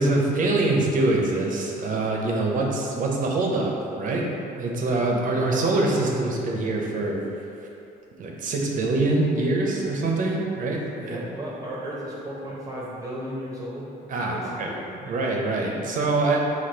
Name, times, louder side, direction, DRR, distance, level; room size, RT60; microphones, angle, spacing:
voice 1, 0.0-7.3 8.2-11.2 14.1-14.7 15.0-16.4, right 2 dB, 50° right, -1 dB, 0.7 m, -24 dB
voice 2, 11.0-14.8, equal, 20° right, -6 dB, 0.8 m, -35 dB
4.2 x 2.9 x 4.4 m, 2.8 s
cardioid pair, 110°, 17 cm